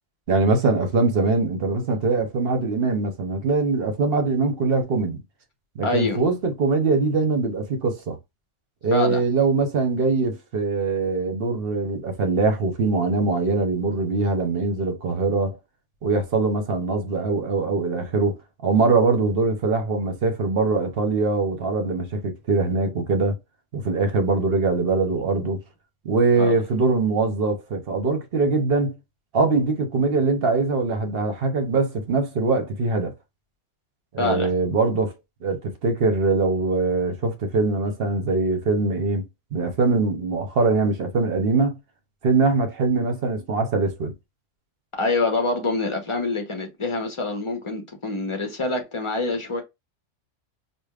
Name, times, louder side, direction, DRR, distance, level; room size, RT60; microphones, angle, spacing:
voice 1, 0.3-5.2 5.8-8.2 8.8-15.6 16.0-23.4 23.7-25.6 26.0-29.0 29.3-33.1 34.1-35.1 35.4-39.2 39.5-41.8 42.2-44.1, right 3 dB, 55° right, 1.0 m, -22 dB
voice 2, 5.8-6.2 8.9-9.2 26.4-26.6 34.2-34.5 44.9-49.6, left 3 dB, 30° left, 0.8 m, -25 dB
5.0 x 2.3 x 2.4 m
omnidirectional pair, 1.2 m